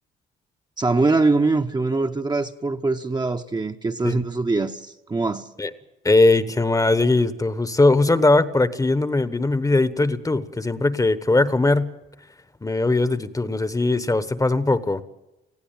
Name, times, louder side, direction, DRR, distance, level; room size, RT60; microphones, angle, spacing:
voice 1, 0.8-5.5, right 3 dB, 20° right, 0.9 m, -23 dB
voice 2, 6.0-11.9 12.6-15.0, left 2 dB, 15° left, 1.0 m, -20 dB
19.5 x 15.5 x 8.8 m
cardioid pair, 90°, 20 cm